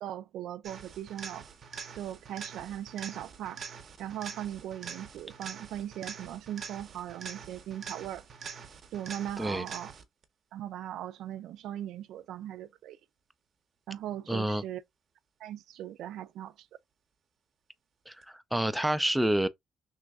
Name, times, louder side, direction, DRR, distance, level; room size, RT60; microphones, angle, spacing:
voice 1, 0.0-1.5 2.0-3.6 4.0-8.3 8.9-9.9 10.5-13.0 13.9-14.8 15.4-16.7, right 11 dB, 85° right, 0.3 m, -39 dB
sound 1, 0.6-10.2 18.2-18.3, right 6 dB, 55° right, 0.7 m, -45 dB
voice 2, 14.3-14.6 18.1-19.5, right 1 dB, 5° right, 0.4 m, -28 dB
3.1 x 2.5 x 3.5 m
cardioid pair, 90°, 0 cm